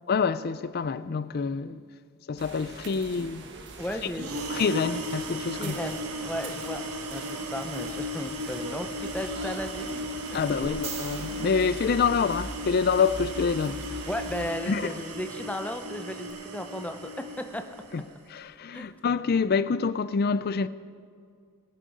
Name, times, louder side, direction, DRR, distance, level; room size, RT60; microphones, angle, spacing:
voice 1, 0.1-1.8 2.3-3.4 4.5-5.8 10.3-13.8 14.7-14.9 17.9-18.0 18.3-20.7, left 5 dB, 45° left, 0.4 m, -26 dB
sound 1, 2.4-14.6, right 2 dB, 55° right, 1.3 m, -42 dB
voice 2, 3.8-4.4 5.6-6.8 7.1-7.2 7.5-9.9 14.1-17.6 18.7-18.9, left 1 dB, 5° left, 0.6 m, -35 dB
sound 2, 4.1-18.1, equal, 90° right, 1.5 m, -36 dB
sound 3, 10.6-12.9 16.3-16.4, right 5 dB, 30° right, 1.6 m, -42 dB
22.0 x 7.5 x 5.3 m
head